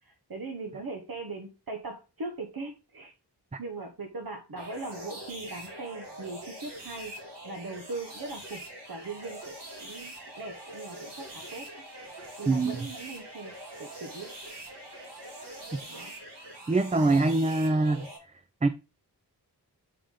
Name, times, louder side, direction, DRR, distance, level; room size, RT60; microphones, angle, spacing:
voice 1, 0.0-3.1 3.6-7.1 7.4-9.5 9.8-11.8 12.4-13.5 13.8-14.3 15.9-16.1 17.0-17.3, right 3 dB, 60° right, 1.0 m, -40 dB
sound 1, 4.6-18.2, right 1 dB, 85° right, 2.4 m, -43 dB
voice 2, 16.7-18.1 18.6-18.7, right 2 dB, 20° right, 0.4 m, -24 dB
6.8 x 5.0 x 3.7 m
wide cardioid pair, 45°, 41 cm